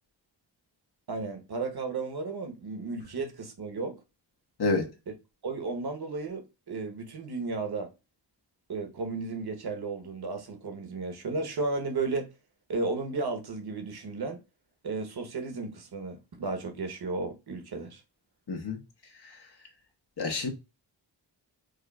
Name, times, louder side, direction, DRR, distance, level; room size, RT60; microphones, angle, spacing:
voice 1, 1.1-4.0 5.1-5.2 5.4-7.9 8.7-12.3 12.7-14.4 14.8-18.0, right 3 dB, 55° right, 1.0 m, -34 dB
voice 2, 4.6-4.9 18.5-18.8 20.2-20.5, left 3 dB, 60° left, 1.2 m, -28 dB
4.9 x 2.5 x 2.2 m
wide cardioid pair, 105°, 45 cm